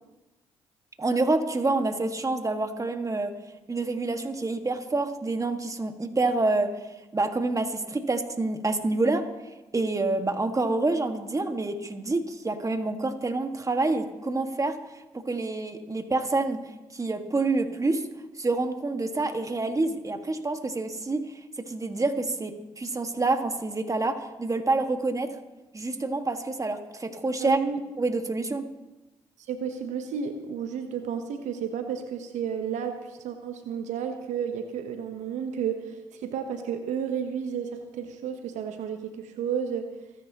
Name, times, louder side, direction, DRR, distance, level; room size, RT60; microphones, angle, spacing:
voice 1, 1.0-3.3 3.7-6.7 7.1-9.2 9.7-14.8 15.1-16.6 16.9-18.0 18.4-21.2 21.6-25.4 25.7-27.6 28.0-28.7, right 3 dB, 25° right, 6 dB, 1.8 m, -27 dB
voice 2, 27.4-27.8 29.4-39.9, right 7 dB, 70° right, 7 dB, 1.1 m, -32 dB
28.0 x 10.5 x 3.0 m, 1.1 s
hypercardioid pair, 45°, 13 cm